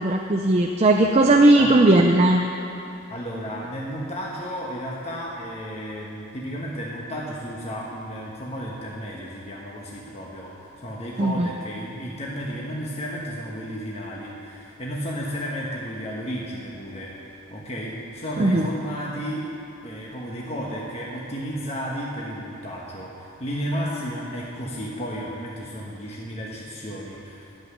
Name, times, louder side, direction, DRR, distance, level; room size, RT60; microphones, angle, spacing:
voice 1, 0.0-2.4 11.2-11.5 18.4-18.7, right 2 dB, 30° right, 2 dB, 0.6 m, -17 dB
voice 2, 3.1-19.5 19.8-27.4, equal, 30° left, -4 dB, 1.3 m, -33 dB
12.0 x 8.1 x 9.6 m, 2.9 s
head